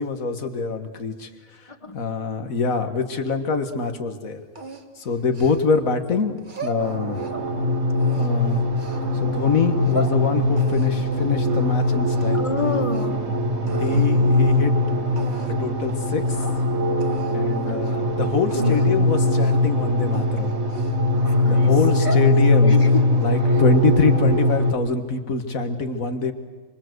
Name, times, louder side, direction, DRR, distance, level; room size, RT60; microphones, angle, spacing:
voice 1, 0.0-4.4 5.0-7.2 8.1-8.6 9.1-12.4 13.8-14.8 15.5-16.4 17.3-20.6 21.5-22.8 23.2-26.3, left 4 dB, 85° left, 8 dB, 2.0 m, -25 dB
voice 2, 1.7-2.0 12.3-13.4 13.6-14.1 17.6-17.9 18.6-19.1 21.1-21.7 22.0-22.1 22.6-23.2 23.4-23.6, left 3 dB, 25° left, 8 dB, 1.5 m, -30 dB
sound 1, 4.6-5.9 6.4-7.5 8.0-9.0 9.6-10.2 10.6-12.3 12.6-13.2 13.7-14.1 14.8-14.9 15.2-15.7 16.1-16.2 16.4-16.6 17.0-17.4 17.7-18.0 18.5-18.9 19.4-19.7 20.1-21.3 21.8-22.3 22.7-23.2, right 1 dB, 35° right, 1.7 m, -36 dB
sound 2, 6.8-24.7, left 2 dB, 55° right, 2.0 m, -21 dB
25.5 x 24.5 x 7.9 m, 1.3 s
omnidirectional pair, 1.4 m